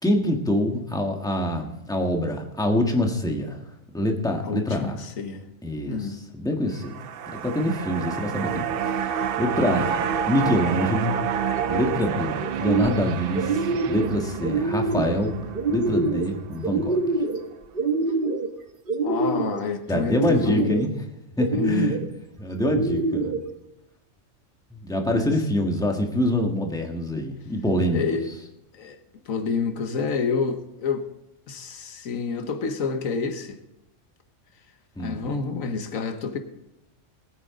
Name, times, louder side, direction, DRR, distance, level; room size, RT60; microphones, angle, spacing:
voice 1, 0.0-3.6 3.9-5.0 5.6-7.0 7.4-11.2 11.7-15.4 15.7-17.0 19.9-21.0 21.4-22.0 22.4-23.3 24.7-28.0 35.0-35.3, left 1 dB, 5° left, 2 dB, 1.4 m, -25 dB
voice 2, 4.4-5.5 5.9-6.2 12.1-12.3 19.0-20.7 21.5-22.0 25.1-25.3 27.9-28.3 28.7-29.0 29.3-31.1 31.5-33.6 35.0-36.4, left 5 dB, 90° left, 7 dB, 1.5 m, -28 dB
sound 1, 6.7-17.1 17.5-17.6, right 8 dB, 60° right, 0.6 m, -29 dB
sound 2, 11.5-12.0 12.4-13.1 13.3-14.1 14.4-15.1 15.5-16.3 16.6-17.4 17.7-18.5 18.9-19.6 20.1-20.8 21.4-22.1 22.6-23.4, right 3 dB, 45° right, 1.1 m, -25 dB
19.5 x 9.0 x 3.7 m, 0.91 s
omnidirectional pair, 1.4 m